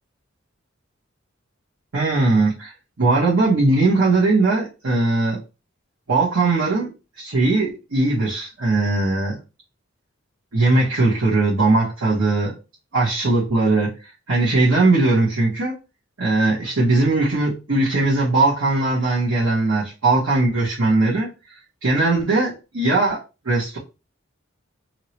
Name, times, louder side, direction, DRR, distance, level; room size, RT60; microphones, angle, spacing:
voice 1, 1.9-2.7 3.0-5.4 6.1-9.4 10.5-12.5 12.9-13.9 14.3-15.7 16.2-21.3 21.8-23.2 23.4-23.8, right 2 dB, 80° right, -8 dB, 1.2 m, -19 dB
2.9 x 2.9 x 2.9 m, 0.29 s
head